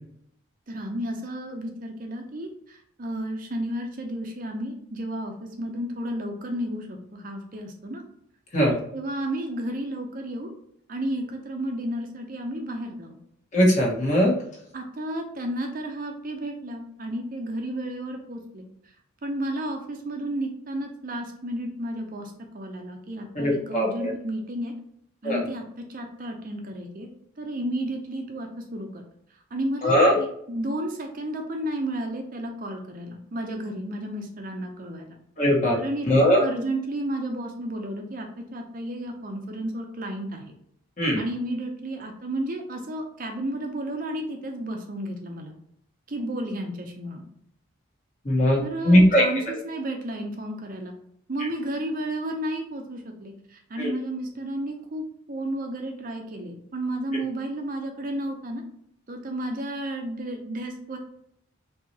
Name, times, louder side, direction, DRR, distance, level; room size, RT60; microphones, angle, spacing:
voice 1, 0.7-8.0 8.7-10.5 10.9-13.2 14.7-18.7 19.2-24.7 25.2-27.1 27.4-29.0 29.5-35.1 35.7-40.4 41.2-45.5 46.1-47.3 48.6-50.9 51.3-58.6 59.1-61.0, right 1 dB, 40° right, 3 dB, 0.6 m, -32 dB
voice 2, 13.5-14.4 23.3-24.1 25.2-25.4 29.8-30.2 35.4-35.8 36.1-36.4 41.0-41.2 48.2-49.5 53.8-53.9, equal, 35° left, -4 dB, 1.3 m, -20 dB
4.6 x 3.0 x 2.8 m, 0.69 s
head